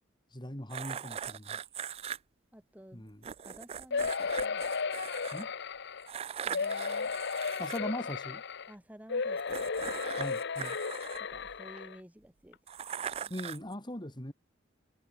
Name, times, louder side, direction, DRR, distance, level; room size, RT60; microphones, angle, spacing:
voice 1, 0.3-1.6 2.9-3.2 5.3-5.5 7.6-8.4 10.2-10.8 13.3-14.3, left 1 dB, 25° left, 3.6 m, -40 dB
sound 1, 0.7-2.2 3.2-5.4 6.1-7.8 9.4-11.8 12.7-13.7, right 8 dB, 30° right, 0.3 m, -40 dB
voice 2, 2.5-3.1 3.4-4.7 6.4-7.1 8.7-10.0 11.2-12.6 12.9-13.3, equal, 10° right, 2.6 m, -53 dB
sound 2, 3.9-6.1 6.5-8.7 9.1-12.0 12.5-12.6 12.9-13.0, left 5 dB, 60° left, 0.9 m, -34 dB
head